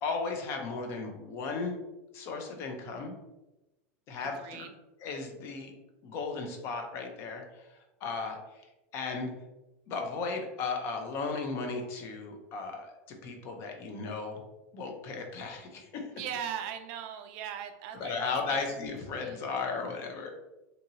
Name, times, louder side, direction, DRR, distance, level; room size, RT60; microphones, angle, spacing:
voice 1, 0.0-1.8 2.1-3.1 4.1-4.7 5.0-5.7 6.0-7.7 8.0-8.4 8.9-9.3 9.9-14.4 14.7-16.1 17.9-20.3, left 4 dB, 35° left, 3 dB, 0.5 m, -35 dB
voice 2, 4.2-4.7 16.2-18.6 19.2-19.4, right 9 dB, 50° right, 7 dB, 0.4 m, -39 dB
2.7 x 2.7 x 2.7 m, 1.0 s
supercardioid pair, 155°, 7 cm